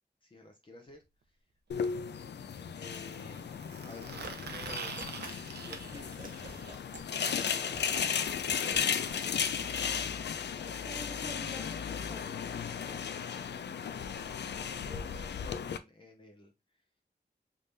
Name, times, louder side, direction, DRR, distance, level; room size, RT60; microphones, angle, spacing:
voice 1, 0.2-1.4 1.7-2.0 2.8-3.5 3.8-4.9 5.6-6.3 7.3-8.5 13.7-16.5, left 2 dB, 30° left, 0.6 m, -52 dB
sound 1, 0.9-1.0 2.9-6.7 8.7-8.8 9.1-9.2 9.4-9.5 10.5-10.6, right 5 dB, 70° right, 0.6 m, -45 dB
sound 2, 1.7-15.8, left 7 dB, 80° left, 0.4 m, -35 dB
sound 3, 4.0-8.8, right 2 dB, 50° right, 1.0 m, -48 dB
voice 2, 10.8-13.0, right 1 dB, 5° right, 1.1 m, -49 dB
3.5 x 2.7 x 3.2 m
wide cardioid pair, 100°, 17 cm